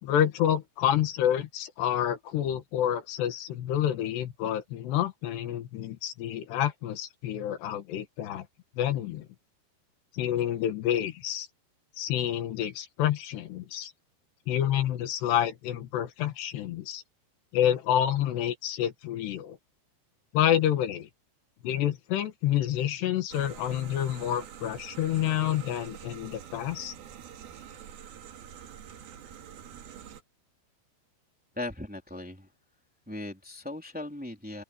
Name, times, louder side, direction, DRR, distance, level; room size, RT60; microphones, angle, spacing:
voice 1, 0.0-8.5 8.8-9.3 10.1-11.5 12.0-13.9 14.5-17.0 17.5-19.6 20.3-21.1 21.6-26.9, left 11 dB, 80° left, 3.6 m, -28 dB
sound 1, 23.3-30.2, right 9 dB, 65° right, 3.6 m, -46 dB
voice 2, 31.5-32.5 33.1-34.6, left 2 dB, ahead, 3.0 m, -38 dB
omnidirectional pair, 4.8 m